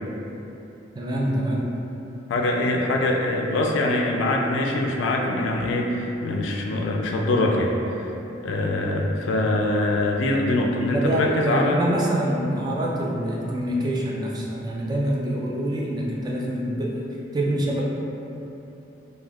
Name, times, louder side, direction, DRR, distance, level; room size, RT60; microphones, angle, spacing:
voice 1, 0.9-1.7 10.9-17.0 17.3-17.8, right 1 dB, 20° right, -3 dB, 0.3 m, -25 dB
voice 2, 2.3-8.1 8.4-11.8, left 2 dB, 75° left, 0 dB, 0.3 m, -23 dB
2.3 x 2.2 x 3.3 m, 2.9 s
head